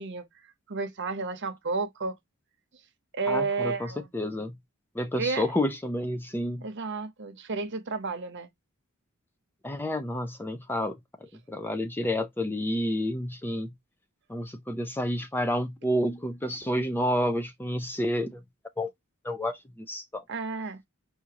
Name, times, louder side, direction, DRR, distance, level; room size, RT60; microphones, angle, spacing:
voice 1, 0.0-2.2 3.1-4.0 5.2-5.5 6.6-8.5 20.3-20.8, right 4 dB, 55° right, 0.9 m, -32 dB
voice 2, 3.3-4.6 5.0-6.7 9.6-11.0 11.5-13.7 14.3-18.4 18.8-18.9 19.2-20.2, left 1 dB, 10° left, 0.4 m, -29 dB
4.9 x 2.6 x 2.8 m
head